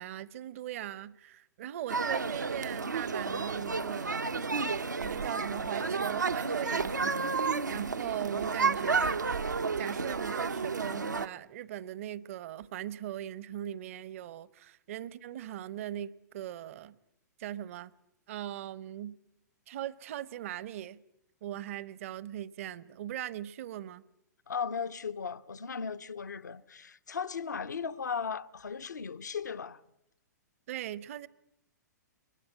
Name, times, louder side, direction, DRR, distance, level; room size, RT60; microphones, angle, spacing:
voice 1, 0.0-4.7 5.0-7.4 7.7-9.4 9.8-17.0 17.4-17.9 18.3-19.2 19.7-21.0 21.4-24.0 30.7-31.3, right 12 dB, 45° right, 0.9 m, -40 dB
sound 1, 1.9-11.3, right 4 dB, 80° right, 1.0 m, -31 dB
voice 2, 24.5-29.8, left 6 dB, 70° left, 1.0 m, -36 dB
23.0 x 20.5 x 9.4 m
figure-of-eight pair, 110°, 10 cm